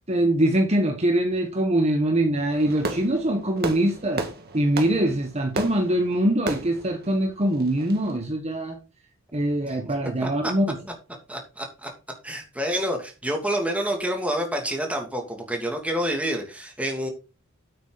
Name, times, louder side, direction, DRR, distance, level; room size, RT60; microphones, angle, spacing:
voice 1, 0.1-4.3 4.5-8.8 9.3-10.8, right 1 dB, 30° right, 1.3 m, -23 dB
Fireworks, 2.5-8.1, right 2 dB, 50° right, 2.0 m, -34 dB
voice 2, 10.2-10.5 11.3-11.9 12.2-17.1, equal, 5° right, 2.7 m, -28 dB
9.8 x 8.4 x 4.1 m
head